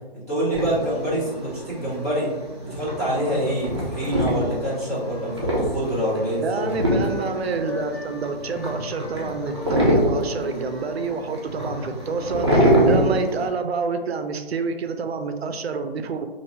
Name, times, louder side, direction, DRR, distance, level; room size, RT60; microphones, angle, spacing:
voice 1, 0.3-2.3 2.6-6.7, right 1 dB, 15° left, -10 dB, 0.7 m, -26 dB
sound 1, 0.5-13.5, equal, 25° right, 0.5 m, -25 dB
Wind instrument woodwind instrument, 4.3-12.4, left 3 dB, 85° left, 0.8 m, -40 dB
voice 2, 6.4-16.3, right 4 dB, 80° right, 7 dB, 0.5 m, -28 dB
3.3 x 2.6 x 2.7 m, 1.2 s
hypercardioid pair, 170°, 31 cm